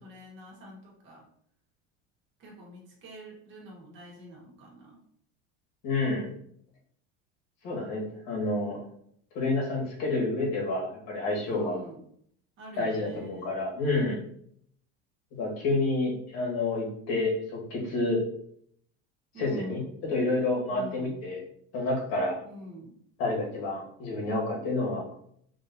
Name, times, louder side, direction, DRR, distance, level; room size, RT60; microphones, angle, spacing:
voice 1, 0.0-1.3 2.4-5.0 11.5-12.0 12.6-13.6 19.3-19.9 20.7-21.2 22.4-23.0, equal, 40° right, -2 dB, 1.4 m, -45 dB
voice 2, 5.8-6.3 7.6-8.8 9.3-11.8 12.8-14.2 15.3-18.2 19.4-21.4 21.7-22.4 23.2-25.1, left 2 dB, 60° left, -1 dB, 1.7 m, -29 dB
5.1 x 2.8 x 2.7 m, 0.65 s
cardioid pair, 145°, 29 cm